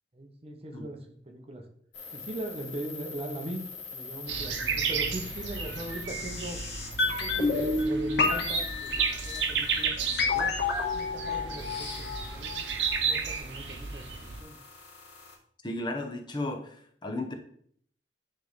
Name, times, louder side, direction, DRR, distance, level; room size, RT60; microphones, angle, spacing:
voice 1, 0.1-1.0 1.3-1.6 2.1-3.6 3.9-6.6 7.0-10.5 10.9-12.5 13.0-14.6, right 1 dB, 35° right, 5 dB, 0.8 m, -40 dB
sound 1, 1.9-7.8 8.2-15.4, left 5 dB, 85° left, 1.8 m, -45 dB
sound 2, 4.3-14.4, right 6 dB, 85° right, 0.8 m, -33 dB
sound 3, 7.0-13.0 13.3-13.4, left 3 dB, 70° left, 1.4 m, -29 dB
voice 2, 15.6-16.7 17.0-17.3, left 2 dB, 25° left, 4 dB, 0.8 m, -33 dB
9.9 x 3.3 x 4.0 m, 0.62 s
head